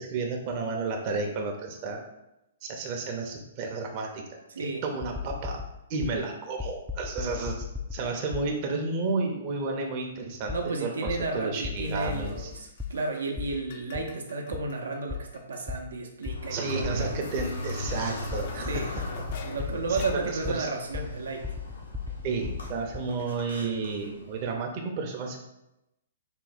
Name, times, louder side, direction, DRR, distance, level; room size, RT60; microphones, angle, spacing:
voice 1, 0.0-2.0 2.6-4.4 4.8-5.6 5.9-7.6 7.9-10.5 10.8-12.5 16.5-18.8 20.1-20.7 22.2-25.4, right 4 dB, 40° right, 1 dB, 0.6 m, -32 dB
voice 2, 4.5-4.8 10.5-17.2 18.6-18.9 19.4-21.5, right 3 dB, 85° right, 1 dB, 0.6 m, -33 dB
sound 1, 5.0-6.2 6.6-8.5 10.5-10.6 11.1-12.9 13.4-14.0 14.5-14.6 15.1-15.2 15.7-15.9 16.2-16.5 16.8-17.5 17.9-20.5 20.9-23.0, left 6 dB, 5° right, 0.3 m, -35 dB
sound 2, 11.8-13.3 13.5-15.8 16.2-16.3 16.6-16.7 17.2-20.7, left 5 dB, 50° left, 0.5 m, -47 dB
Car, 16.3-24.5, left 1 dB, 85° left, 1.0 m, -39 dB
3.8 x 2.2 x 4.1 m, 0.88 s
hypercardioid pair, 135°, 0 cm